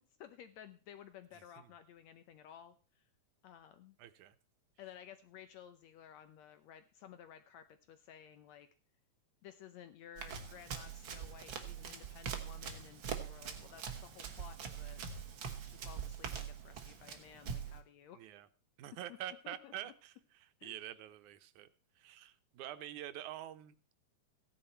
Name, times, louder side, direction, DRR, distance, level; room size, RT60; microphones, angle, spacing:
voice 1, 0.2-3.1 3.4-4.0 4.8-8.7 9.4-15.0 15.6-18.3 19.4-19.9 20.6-20.8, left 9 dB, 75° left, 1.9 m, -55 dB
voice 2, 4.0-4.4 18.1-18.5 18.8-21.7 22.0-23.9, right 12 dB, 85° right, 2.3 m, -47 dB
Run, 10.2-17.8, right 7 dB, 50° right, 1.8 m, -43 dB
16.0 x 10.0 x 4.4 m
omnidirectional pair, 3.4 m